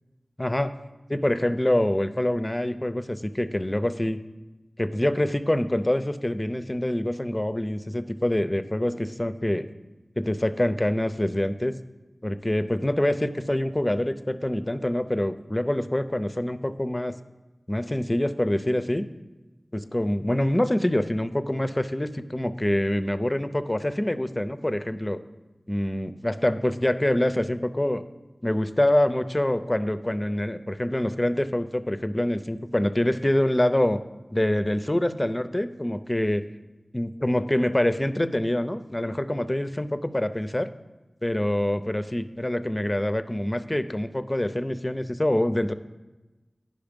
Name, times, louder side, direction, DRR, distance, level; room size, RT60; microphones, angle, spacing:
voice 1, 0.4-0.7 1.1-4.2 4.8-9.7 10.2-11.7 12.2-17.2 17.7-19.1 19.7-25.2 25.7-28.0 28.4-34.0 34.3-36.4 36.9-40.7 41.2-45.7, left 1 dB, 25° left, 11 dB, 0.5 m, -25 dB
9.5 x 5.5 x 5.2 m, 1.1 s
wide cardioid pair, 40°, 0 cm